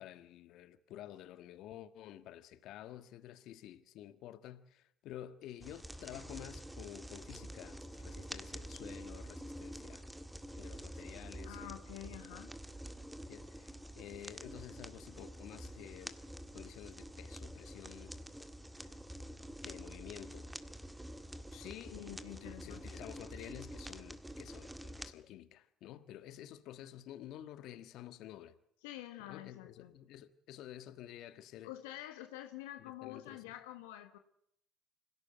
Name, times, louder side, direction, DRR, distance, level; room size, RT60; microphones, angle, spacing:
voice 1, 0.0-10.1 10.5-11.6 13.3-16.2 16.5-18.2 18.8-19.0 19.6-20.5 21.5-22.0 22.3-28.6 29.2-31.7 32.8-33.4, left 12 dB, 65° left, 1.5 m, -51 dB
sound 1, 5.6-25.1, equal, 5° right, 1.9 m, -48 dB
voice 2, 11.4-12.5 21.9-22.8 28.8-29.9 31.6-34.2, left 14 dB, 80° left, 1.3 m, -48 dB
25.5 x 17.0 x 8.0 m
hypercardioid pair, 65°, 0 cm